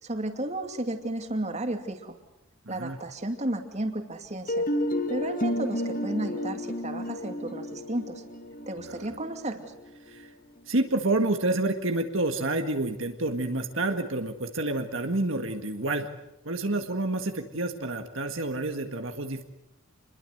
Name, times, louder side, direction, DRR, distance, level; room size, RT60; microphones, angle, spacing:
voice 1, 0.0-2.2 2.7-4.6 5.1-8.2 8.7-9.7, right 1 dB, 30° right, 6 dB, 2.5 m, -33 dB
voice 2, 2.7-3.0 8.9-9.1 10.1-10.3 10.7-16.1 16.4-19.4, right 2 dB, 65° right, 6 dB, 1.8 m, -28 dB
sound 1, 4.5-10.3, left 1 dB, 40° left, 2.2 m, -31 dB
28.0 x 22.0 x 8.0 m, 0.87 s
head